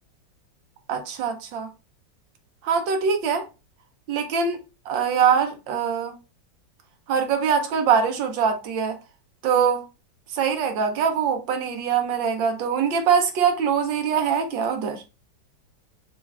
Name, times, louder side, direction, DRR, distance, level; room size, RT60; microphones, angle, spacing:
voice 1, 0.9-1.7 2.6-3.4 4.1-6.1 7.1-9.0 9.4-9.8 10.3-15.0, right 6 dB, 80° right, 1.5 m, -23 dB
5.8 x 2.4 x 3.3 m
omnidirectional pair, 2.0 m